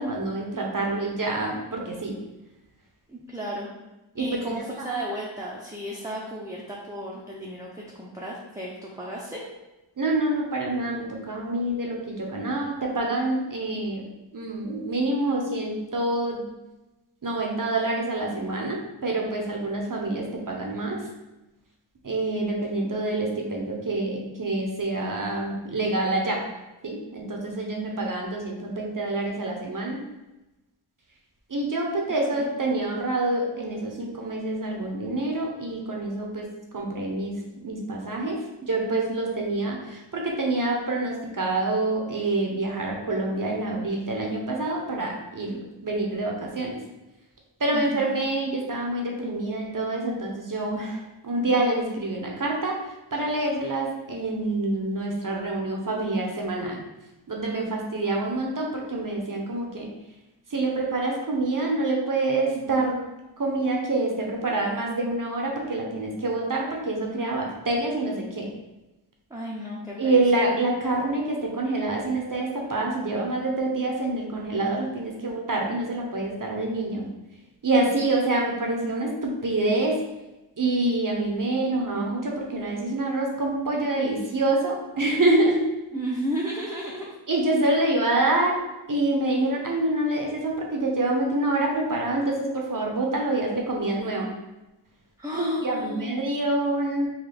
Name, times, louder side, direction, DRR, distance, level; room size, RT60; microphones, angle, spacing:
voice 1, 0.0-2.2 4.1-4.3 4.8-5.0 10.0-14.0 14.3-16.5 17.2-21.0 22.0-26.4 26.8-30.0 31.5-36.5 36.7-46.8 47.6-52.8 53.1-56.8 57.3-59.9 60.5-63.0 63.4-68.5 70.0-77.1 77.6-80.0 80.6-85.7 87.3-88.6 88.9-94.3 95.3-97.1, right 2 dB, 40° right, 0 dB, 0.7 m, -26 dB
voice 2, 3.1-3.7 4.2-9.4 32.3-32.5 47.7-48.1 69.3-70.2 85.9-87.1 95.2-96.3, equal, 5° right, -4 dB, 0.5 m, -34 dB
3.8 x 2.4 x 3.4 m, 1.0 s
wide cardioid pair, 60°, 48 cm